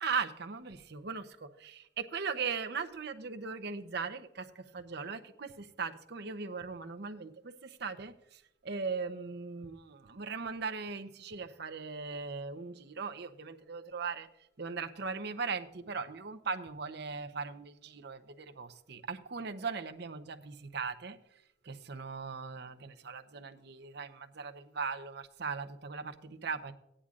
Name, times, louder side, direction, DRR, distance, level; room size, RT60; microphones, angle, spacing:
voice 1, 0.0-14.3 14.6-21.2 21.6-26.7, right 5 dB, 60° right, 7 dB, 0.8 m, -39 dB
17.0 x 10.0 x 2.5 m, 0.82 s
head